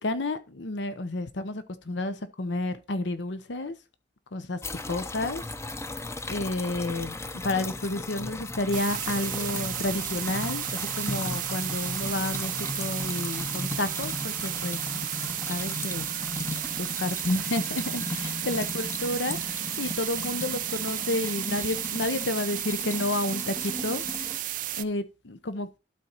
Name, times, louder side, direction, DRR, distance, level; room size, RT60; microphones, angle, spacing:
voice 1, 0.0-3.7 4.3-4.6 4.9-5.4 6.3-16.1 16.8-24.0 24.8-25.8, left 2 dB, 85° left, 0.9 m, -31 dB
sound 1, 4.6-24.4, left 2 dB, 15° left, 0.5 m, -37 dB
sound 2, 8.7-24.8, right 14 dB, 50° right, 0.4 m, -33 dB
12.0 x 4.3 x 4.0 m
head